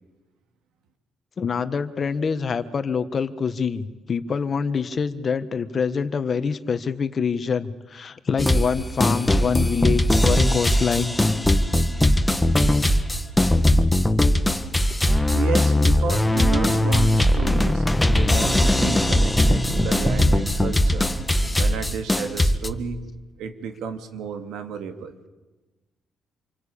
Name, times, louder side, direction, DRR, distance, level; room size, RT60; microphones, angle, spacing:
voice 1, 1.4-11.2, left 6 dB, 45° left, 11 dB, 1.6 m, -25 dB
sound 1, 8.4-8.7 9.0-22.7, left 1 dB, 10° left, 1.7 m, -20 dB
voice 2, 15.3-21.1 21.6-23.1 23.4-25.2, right 6 dB, 85° right, 7 dB, 2.5 m, -32 dB
27.0 x 24.5 x 8.8 m, 1.2 s
cardioid pair, 90°, 0 cm